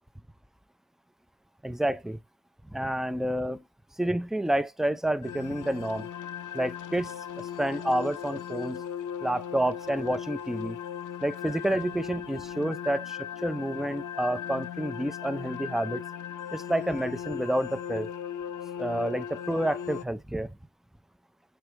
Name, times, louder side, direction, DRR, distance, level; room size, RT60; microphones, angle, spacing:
voice 1, 1.6-2.2 2.6-3.6 4.0-6.1 6.5-8.8 9.2-10.8 11.2-16.0 16.5-18.1 18.8-20.5, right 1 dB, ahead, 0.4 m, -29 dB
sound 1, 5.2-20.0, left 9 dB, 80° left, 0.5 m, -38 dB
7.6 x 4.6 x 3.2 m
cardioid pair, 50°, 31 cm